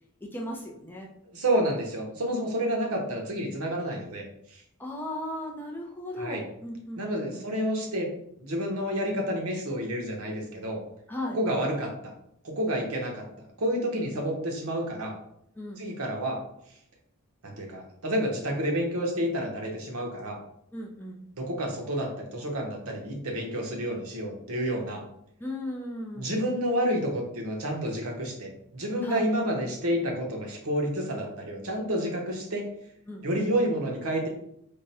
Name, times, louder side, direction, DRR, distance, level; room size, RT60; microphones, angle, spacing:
voice 1, 0.2-1.1 4.8-7.5 11.1-11.4 15.6-15.8 20.7-21.2 25.4-26.3 29.0-29.3 33.1-33.3, left 1 dB, 10° left, -1 dB, 0.4 m, -36 dB
voice 2, 1.3-4.2 4.5-4.6 6.2-6.4 7.0-8.1 8.4-10.8 11.3-11.9 12.4-13.2 13.6-15.1 15.8-16.4 17.4-20.4 21.4-25.0 26.1-32.6 33.2-34.3, equal, 70° right, 0 dB, 0.9 m, -29 dB
3.6 x 2.1 x 4.1 m, 0.73 s
head